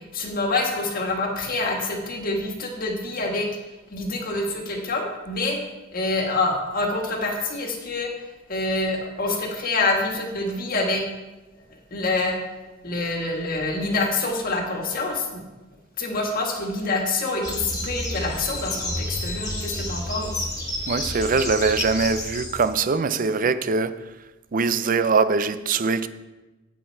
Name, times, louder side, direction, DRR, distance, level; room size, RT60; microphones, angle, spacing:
voice 1, 0.1-3.5 3.9-5.6 5.9-8.1 8.5-11.0 11.9-12.4 12.8-15.3 16.0-20.4, left 2 dB, 45° left, 1.5 m, -26 dB
sound 1, 17.4-22.7, left 1 dB, 20° left, 1.7 m, -30 dB
voice 2, 20.9-24.0 24.5-26.1, right 4 dB, 40° right, 0.5 m, -22 dB
8.5 x 8.3 x 4.6 m
head